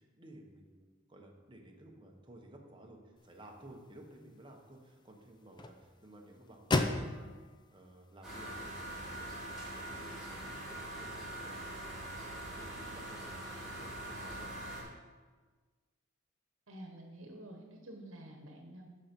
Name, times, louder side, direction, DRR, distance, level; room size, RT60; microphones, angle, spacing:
voice 1, 0.0-7.3 7.7-9.3 9.6-14.5, right 1 dB, 25° right, 1 dB, 1.2 m, -55 dB
sound 1, 3.2-9.3, left 2 dB, 20° left, 0.5 m, -39 dB
sound 2, 8.2-14.8, right 1 dB, ahead, 2.8 m, -43 dB
voice 2, 16.7-18.9, right 1 dB, 75° right, 2 dB, 1.2 m, -49 dB
12.0 x 5.2 x 4.5 m, 1.4 s
head